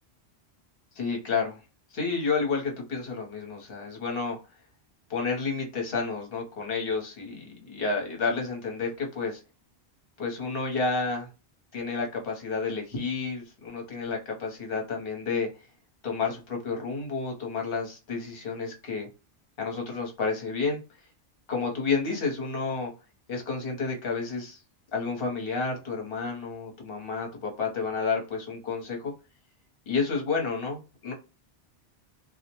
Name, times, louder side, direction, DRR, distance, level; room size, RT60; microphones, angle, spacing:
voice 1, 1.0-1.6 1.9-4.4 5.1-9.4 10.2-11.3 11.7-15.5 16.0-19.1 19.6-20.8 21.5-22.9 23.3-24.6 24.9-29.1 29.9-31.1, left 4 dB, 55° left, 1.0 m, -30 dB
2.3 x 2.1 x 2.8 m
omnidirectional pair, 1.2 m